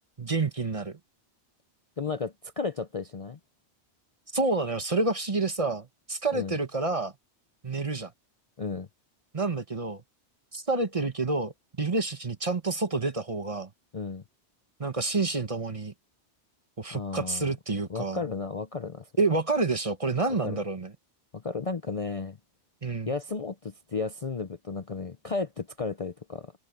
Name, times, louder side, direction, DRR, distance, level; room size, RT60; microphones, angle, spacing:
voice 1, 0.2-1.0 4.3-7.1 7.6-8.1 9.3-10.0 10.5-11.5 11.8-13.7 14.8-15.9 16.8-18.2 19.2-20.9 22.8-23.1, right 3 dB, 30° right, 1.2 m, -28 dB
voice 2, 2.0-3.4 6.3-6.6 8.6-8.9 13.9-14.2 16.9-17.5 17.9-19.1 20.4-20.6 21.3-22.4 23.1-26.5, left 4 dB, 35° left, 0.7 m, -33 dB
omnidirectional pair, 1.2 m